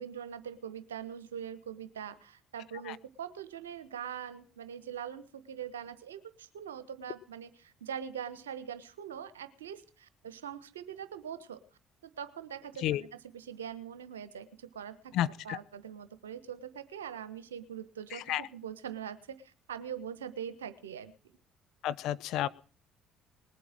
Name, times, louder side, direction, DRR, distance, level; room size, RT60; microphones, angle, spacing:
voice 1, 0.0-11.6 12.0-13.1 13.3-15.0 15.4-21.1, right 8 dB, 85° right, 13 dB, 1.2 m, -42 dB
voice 2, 15.1-15.6 18.1-18.5 21.8-22.5, left 12 dB, 65° left, 14 dB, 0.7 m, -31 dB
20.0 x 8.5 x 7.5 m, 0.38 s
hypercardioid pair, 55°, 0 cm